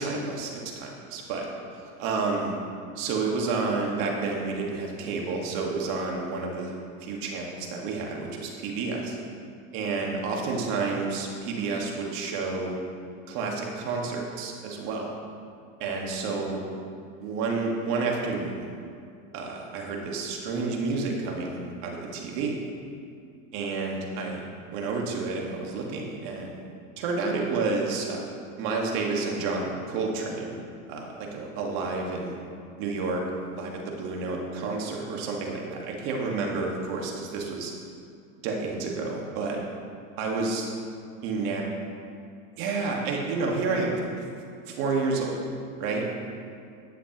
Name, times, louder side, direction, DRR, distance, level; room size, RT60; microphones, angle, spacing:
voice 1, 0.0-1.5 1.7-2.5 2.9-6.7 7.0-9.2 9.7-12.8 13.3-15.1 15.8-16.6 17.2-18.7 19.3-22.5 23.5-24.4 24.7-26.6 27.0-28.3 28.6-30.6 30.9-32.3 32.8-33.2 33.5-37.7 38.4-39.6 40.2-40.7 41.2-41.6 42.6-44.2 44.7-45.4 45.8-46.0, right 4 dB, 60° right, 0 dB, 1.7 m, -30 dB
10.5 x 8.1 x 3.0 m, 2.3 s
supercardioid pair, 120°, 41 cm